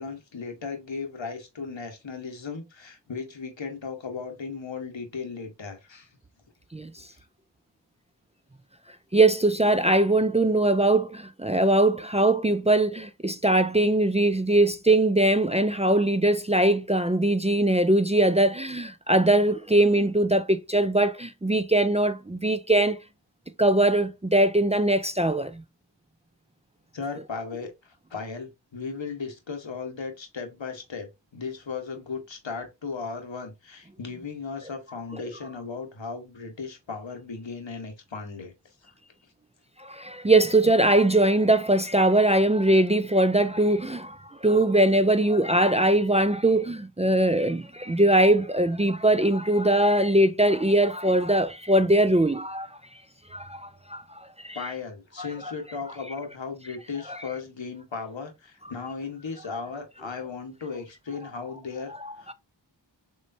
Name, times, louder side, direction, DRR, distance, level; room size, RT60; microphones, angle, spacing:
voice 1, 0.0-6.1 7.1-7.2 26.9-38.5 38.8-38.9 54.5-61.9 62.2-62.3, left 5 dB, 85° left, 1.3 m, -36 dB
voice 2, 9.1-23.0 23.6-25.6 39.8-52.8 53.3-54.6 55.2-55.5 57.1-57.2 62.0-62.3, right 1 dB, 15° right, 0.4 m, -21 dB
6.2 x 3.2 x 2.6 m
wide cardioid pair, 50°, 44 cm